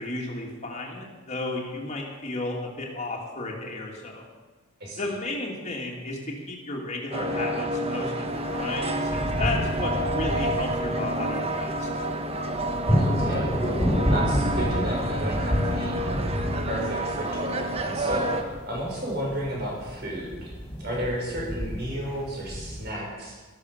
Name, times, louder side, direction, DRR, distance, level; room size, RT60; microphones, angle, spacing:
voice 1, 0.0-4.3 5.0-11.9, left 2 dB, 30° left, -2 dB, 2.6 m, -33 dB
voice 2, 4.8-5.1 13.0-13.8 14.1-16.2 16.7-23.4, equal, 50° right, -3 dB, 5.8 m, -33 dB
sound 1, 7.1-18.4, right 1 dB, 30° right, 1.2 m, -29 dB
sound 2, 8.3-22.9, equal, 10° left, 4.1 m, -30 dB
13.0 x 12.5 x 6.9 m, 1.3 s
head